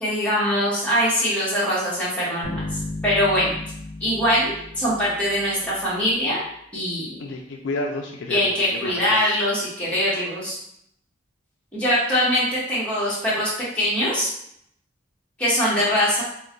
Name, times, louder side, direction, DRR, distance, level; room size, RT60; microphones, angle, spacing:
voice 1, 0.0-2.6 3.0-3.5 4.0-6.4 6.7-7.1 8.3-10.6 11.7-14.3 15.4-16.2, equal, 5° left, -9 dB, 0.9 m, -22 dB
sound 1, 2.4-5.8, left 2 dB, 90° right, 1.0 m, -34 dB
voice 2, 7.2-9.4, left 2 dB, 65° left, 1 dB, 0.3 m, -31 dB
2.3 x 2.1 x 3.7 m, 0.72 s
head